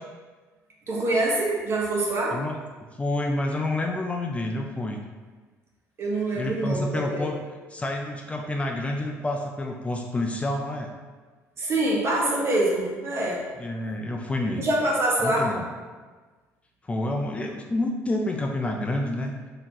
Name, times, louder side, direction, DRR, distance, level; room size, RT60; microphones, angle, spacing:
voice 1, 0.9-2.4 6.0-7.3 11.6-13.4 14.6-15.6, right 1 dB, 45° right, -3 dB, 1.1 m, -25 dB
voice 2, 3.0-5.0 6.3-7.4 7.7-10.9 13.6-14.7 15.2-15.7 16.8-19.3, left 1 dB, 20° left, 2 dB, 0.4 m, -28 dB
4.0 x 2.8 x 3.0 m, 1.4 s
supercardioid pair, 80°, 6 cm